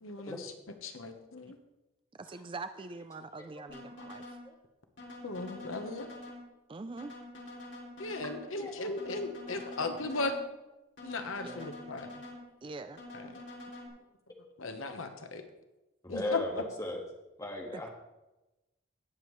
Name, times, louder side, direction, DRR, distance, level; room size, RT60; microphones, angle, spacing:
voice 1, 0.0-0.5 0.8-1.6 5.2-6.1 8.0-10.3 11.0-12.1 13.1-13.4 14.6-15.4 16.1-16.6, left 3 dB, 80° left, 7 dB, 1.1 m, -37 dB
voice 2, 2.1-4.4 6.7-7.1 11.4-11.7 12.6-13.0 17.7-17.9, right 3 dB, 25° right, 11 dB, 0.3 m, -43 dB
sound 1, 3.7-4.4 5.0-6.4 7.0-8.4 9.0-10.4 11.0-12.4 13.0-13.9, left 1 dB, 60° left, 2.9 m, -46 dB
voice 3, 8.5-8.9 16.0-17.0 17.4-17.9, left 1 dB, 15° left, 0 dB, 1.7 m, -37 dB
18.0 x 7.2 x 3.2 m, 1.0 s
head